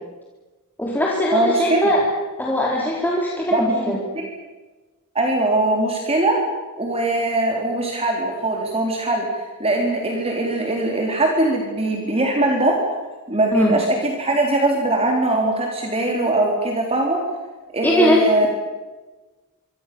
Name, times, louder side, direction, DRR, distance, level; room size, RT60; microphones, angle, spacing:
voice 1, 0.8-2.0 2.4-4.0 13.5-13.7 17.8-18.5, left 1 dB, 10° left, -4 dB, 4.2 m, -20 dB
voice 2, 1.3-1.8 3.5-3.6 4.1-4.3 5.1-6.4 6.8-9.3 9.6-12.8 13.3-17.2 17.7-18.5, right 2 dB, 25° right, 1 dB, 4.1 m, -21 dB
26.0 x 25.5 x 7.1 m, 1.2 s
head